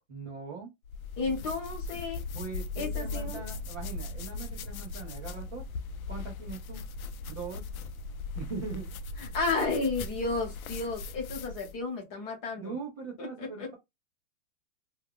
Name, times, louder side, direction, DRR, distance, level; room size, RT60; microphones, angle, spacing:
voice 1, 0.1-0.7 2.3-5.7 6.1-6.8 7.3-7.6 8.4-8.9 12.6-13.7, right 5 dB, 15° right, 0.4 m, -40 dB
sound 1, 0.8-11.8, left 3 dB, 85° left, 0.6 m, -39 dB
voice 2, 1.2-2.2 2.8-3.4 9.2-12.7 13.2-13.7, left 3 dB, 25° left, 0.9 m, -32 dB
2.3 x 2.1 x 3.6 m
hypercardioid pair, 160°, 41 cm